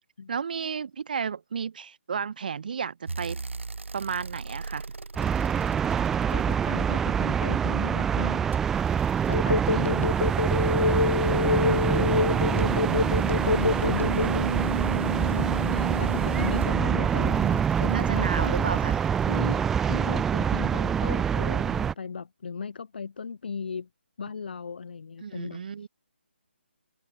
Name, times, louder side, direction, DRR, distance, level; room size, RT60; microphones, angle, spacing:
voice 1, 0.3-3.4 3.9-4.8 11.5-11.8 17.8-19.0 25.2-25.9, right 6 dB, 45° right, 0.9 m, -32 dB
sound 1, 3.1-7.2 8.5-19.7 21.3-21.4, right 3 dB, 90° right, 1.5 m, -35 dB
sound 2, 5.2-21.9, right 7 dB, 5° right, 0.5 m, -25 dB
voice 2, 6.3-8.5 9.3-10.1 10.9-13.1 13.4-14.6 15.0-23.9 24.2-25.6, left 5 dB, 55° left, 3.5 m, -36 dB
Telephone, 9.3-14.6, left 3 dB, 85° left, 2.2 m, -25 dB
hypercardioid pair, 165°, 6 cm